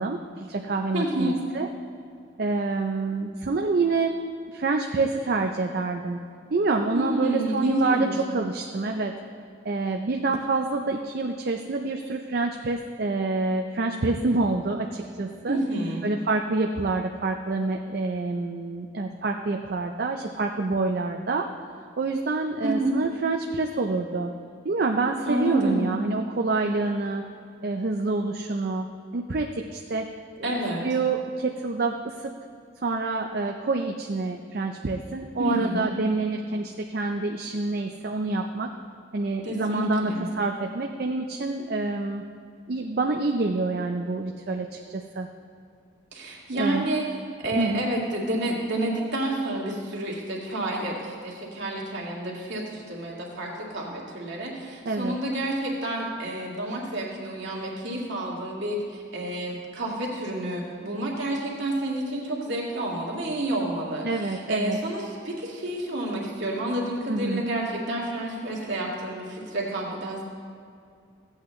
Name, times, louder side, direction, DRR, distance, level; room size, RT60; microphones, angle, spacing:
voice 1, 0.0-1.7 2.4-4.2 4.5-6.2 6.5-9.1 9.6-15.6 16.0-21.5 22.0-24.3 24.6-27.3 27.6-28.9 29.1-30.1 30.4-30.5 30.8-32.3 32.8-38.7 39.1-42.3 42.7-45.3 46.6-46.9 47.6-47.9 54.8-55.2 64.0-64.8 67.1-67.5, right 3 dB, 50° right, 3 dB, 0.5 m, -27 dB
voice 2, 0.9-1.3 6.9-8.1 15.5-16.0 22.6-22.9 25.2-25.9 30.4-30.8 35.4-35.9 39.4-40.3 46.1-47.1 47.4-70.2, right 1 dB, 65° right, -3 dB, 2.1 m, -29 dB
15.5 x 8.6 x 3.1 m, 2.4 s
head